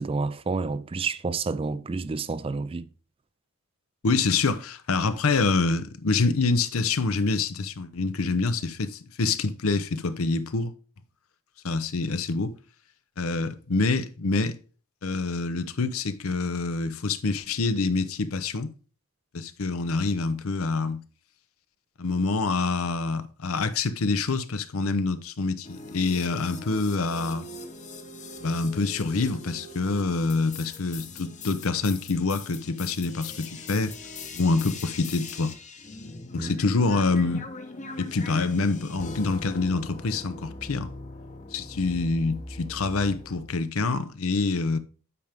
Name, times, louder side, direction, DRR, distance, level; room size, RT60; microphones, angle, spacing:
voice 1, 0.0-2.9 36.4-36.5, right 4 dB, 25° right, 0.3 m, -29 dB
voice 2, 4.0-10.7 11.6-12.5 13.2-14.6 15.0-18.7 19.3-21.0 22.0-27.5 28.4-33.9 34.3-35.5 36.3-37.5 38.0-40.9 41.5-44.8, left 3 dB, 75° left, 0.7 m, -26 dB
sound 1, 25.6-43.6, left 3 dB, 35° left, 0.9 m, -41 dB
8.4 x 5.2 x 3.5 m
head